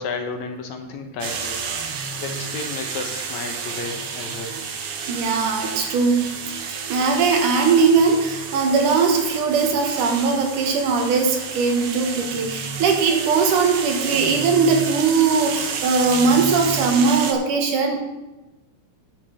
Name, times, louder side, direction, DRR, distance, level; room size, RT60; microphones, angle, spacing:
voice 1, 0.0-4.6, left 4 dB, 65° left, 4 dB, 2.3 m, -32 dB
sound 1, 1.2-17.3, right 5 dB, 60° right, 1.6 m, -30 dB
voice 2, 5.1-6.2 6.9-18.0, right 4 dB, 75° right, 3 dB, 3.0 m, -20 dB
10.5 x 5.8 x 7.0 m, 1.1 s
omnidirectional pair, 3.7 m